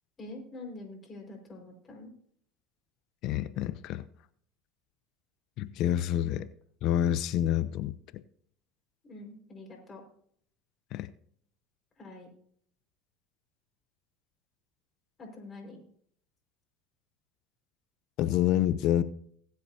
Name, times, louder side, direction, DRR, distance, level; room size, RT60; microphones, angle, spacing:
voice 1, 0.2-2.1 9.0-10.0 12.0-12.3 15.2-15.8, left 2 dB, 30° left, 5.0 m, -45 dB
voice 2, 3.2-4.0 5.6-6.5 6.8-7.9 10.9-11.1 18.2-19.0, left 11 dB, 60° left, 0.6 m, -27 dB
20.5 x 8.2 x 2.8 m
supercardioid pair, 95°, 0 cm